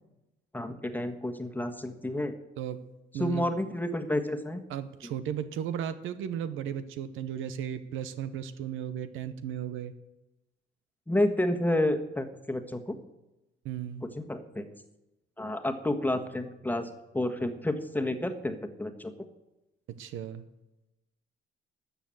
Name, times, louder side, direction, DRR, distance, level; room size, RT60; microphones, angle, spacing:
voice 1, 0.5-2.3 3.2-4.6 5.0-5.1 11.1-13.0 14.0-14.7 15.4-16.9 17.1-19.3, left 1 dB, 10° left, 6 dB, 1.4 m, -30 dB
voice 2, 3.1-3.4 4.7-9.9 13.6-14.1 20.0-20.4, right 9 dB, 90° right, 12 dB, 0.9 m, -35 dB
13.0 x 7.1 x 7.7 m, 0.97 s
cardioid pair, 90°, 20 cm